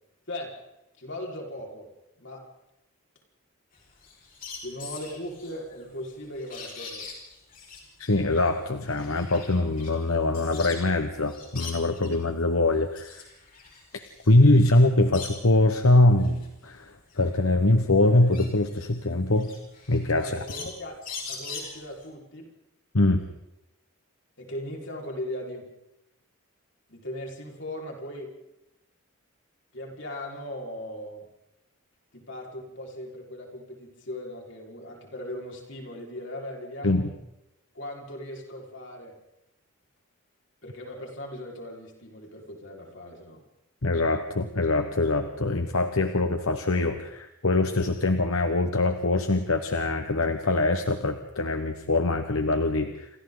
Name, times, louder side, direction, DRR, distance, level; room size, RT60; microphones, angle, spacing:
voice 1, 0.3-0.6 1.0-1.9 2.2-2.4 4.6-7.1 20.2-21.0 21.3-22.5 24.4-25.7 26.9-28.3 29.7-31.3 32.1-37.0 37.7-39.2 40.6-43.4, left 1 dB, 55° left, 0 dB, 4.9 m, -38 dB
sound 1, 3.7-11.0 11.3-12.2 12.7-15.6 16.1-22.1, left 5 dB, 40° left, 5.3 m, -42 dB
voice 2, 8.0-13.2 13.9-19.5 19.9-20.3 22.9-23.3 36.8-37.1 43.8-53.1, left 2 dB, 75° left, 7 dB, 1.3 m, -23 dB
28.5 x 26.0 x 4.0 m, 0.90 s
head